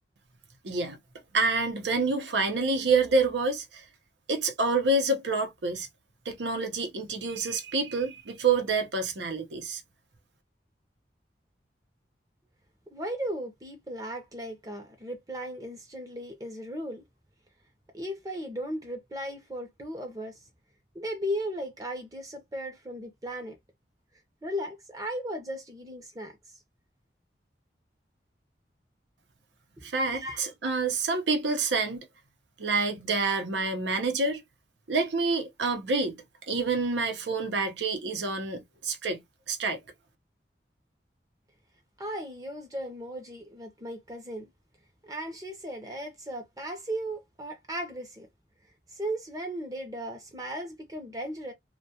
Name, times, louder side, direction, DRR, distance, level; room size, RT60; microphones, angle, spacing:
voice 1, 0.6-1.0 1.3-3.8 4.3-5.9 6.3-9.8 29.8-32.1 32.6-34.4 34.9-36.2 36.5-39.2 39.5-39.8, right 3 dB, 85° right, 0.7 m, -27 dB
voice 2, 12.9-17.0 17.9-20.4 20.9-23.6 24.4-26.4 29.8-30.4 42.0-44.5 45.0-48.3 48.9-51.5, equal, 20° right, 0.6 m, -36 dB
2.3 x 2.2 x 2.7 m
head